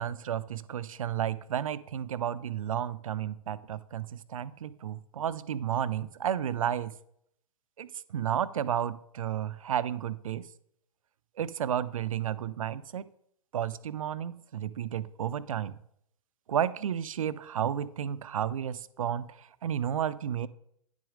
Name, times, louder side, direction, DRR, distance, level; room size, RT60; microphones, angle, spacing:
voice 1, 0.0-6.9 7.8-10.5 11.4-13.1 13.5-15.7 16.5-20.5, right 9 dB, 65° right, 16 dB, 0.5 m, -32 dB
9.7 x 7.2 x 3.7 m, 0.71 s
figure-of-eight pair, 115°, 18 cm